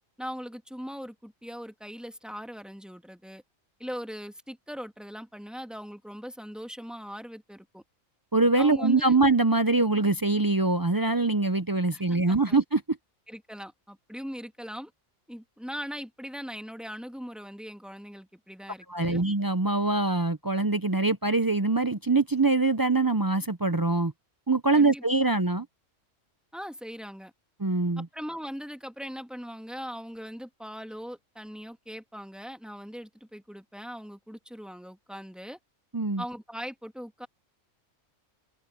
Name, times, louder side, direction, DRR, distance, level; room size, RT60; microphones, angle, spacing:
voice 1, 0.2-3.4 3.8-7.8 8.6-9.2 11.9-12.6 13.3-14.9 15.3-19.2 24.7-25.0 26.5-27.3 28.0-35.6 36.2-37.3, equal, ahead, 1.5 m, -40 dB
voice 2, 8.3-12.8 18.9-24.1 24.5-25.7 27.6-28.1 35.9-36.2, right 3 dB, 35° right, 0.3 m, -24 dB
omnidirectional pair, 1.4 m